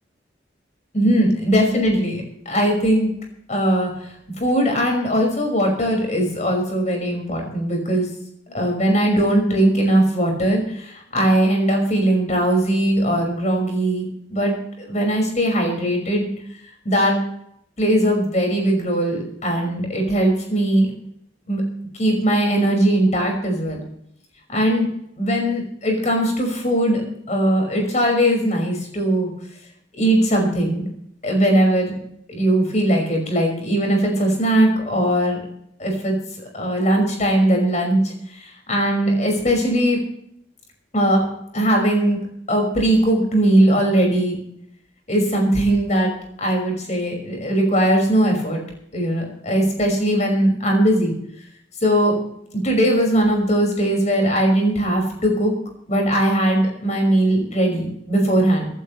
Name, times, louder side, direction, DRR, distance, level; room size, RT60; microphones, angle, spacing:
voice 1, 0.9-3.1 3.5-8.1 8.5-16.3 16.8-17.2 17.8-20.9 21.5-21.6 21.9-23.8 24.5-24.9 25.2-27.0 27.3-29.3 30.0-30.9 31.2-31.9 32.3-35.4 35.8-36.1 36.5-40.0 40.9-41.2 41.5-42.2 42.5-44.4 45.1-46.1 46.4-48.6 48.9-51.1 51.8-52.2 52.6-55.5 55.9-58.7, right 1 dB, 40° left, 1 dB, 5.7 m, -19 dB
24.5 x 12.0 x 3.3 m, 0.72 s
head